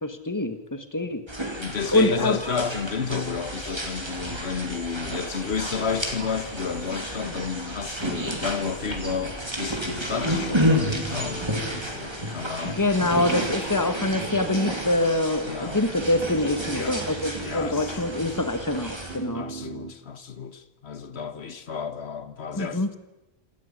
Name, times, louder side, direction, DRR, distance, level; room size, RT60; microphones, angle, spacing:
voice 1, 0.0-1.2 1.9-2.4 12.8-19.4 22.5-22.9, left 2 dB, 20° left, 1.7 m, -25 dB
sound 1, 1.3-19.2, equal, 25° right, 3.1 m, -31 dB
voice 2, 1.5-13.7 15.5-15.8 16.7-17.0 17.4-18.0 19.3-23.0, left 6 dB, 85° left, 1.6 m, -32 dB
sound 2, 8.9-19.9, right 5 dB, 55° right, 2.4 m, -41 dB
27.0 x 13.5 x 9.8 m
omnidirectional pair, 1.1 m